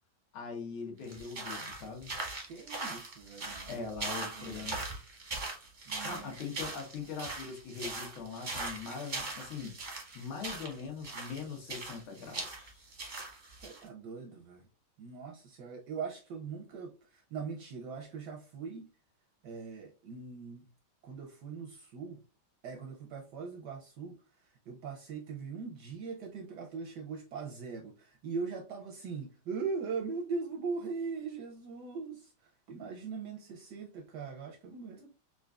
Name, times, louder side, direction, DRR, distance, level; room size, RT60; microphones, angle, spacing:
voice 1, 0.3-2.2 3.7-4.8 6.0-9.7 10.1-12.8, left 5 dB, 90° left, 1.9 m, -41 dB
sound 1, 1.0-13.8, right 3 dB, 40° right, 0.6 m, -40 dB
voice 2, 2.4-4.8 5.9-6.3 13.5-14.7 15.0-18.9 19.4-20.7 21.0-22.2 22.6-35.1, right 5 dB, 75° right, 1.0 m, -41 dB
4.4 x 2.5 x 2.3 m
omnidirectional pair, 2.2 m